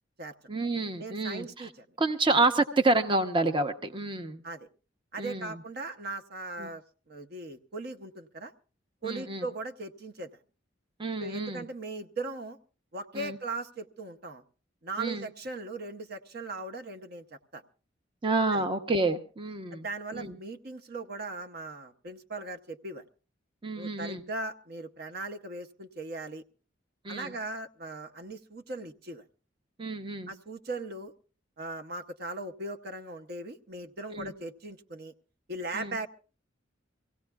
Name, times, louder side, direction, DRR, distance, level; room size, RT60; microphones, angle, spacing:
voice 1, 0.5-1.7 2.0-4.4 5.2-5.5 6.6-6.7 9.0-9.4 11.0-11.6 13.1-13.4 15.0-15.3 18.2-19.8 20.1-20.4 23.6-24.2 27.0-27.3 29.8-30.3 34.1-34.3 35.7-36.0, right 3 dB, 25° right, 8 dB, 0.8 m, -29 dB
voice 2, 1.0-1.9 4.4-4.7 5.1-8.5 9.0-10.3 11.2-12.6 12.9-14.4 14.8-17.6 18.5-18.7 19.7-23.0 23.8-26.4 27.1-29.2 30.3-31.1 31.6-35.1 35.5-36.1, right 2 dB, 55° right, 6 dB, 0.9 m, -39 dB
24.5 x 17.0 x 2.3 m, 0.38 s
head